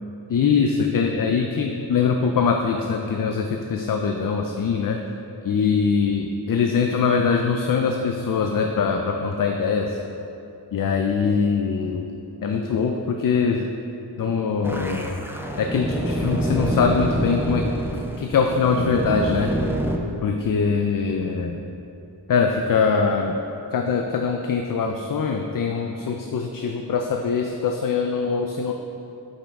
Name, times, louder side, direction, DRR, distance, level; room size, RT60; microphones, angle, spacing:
voice 1, 0.3-5.0 5.4-10.0 10.7-12.1 12.4-13.7 14.2-15.3 15.6-17.7 18.2-19.5 20.2-21.6 22.3-23.3 23.7-28.7, left 5 dB, 50° left, 3 dB, 0.5 m, -22 dB
sound 1, 14.6-20.0, right 1 dB, 5° right, 0.5 m, -26 dB
8.2 x 5.5 x 3.6 m, 2.9 s
wide cardioid pair, 90°, 44 cm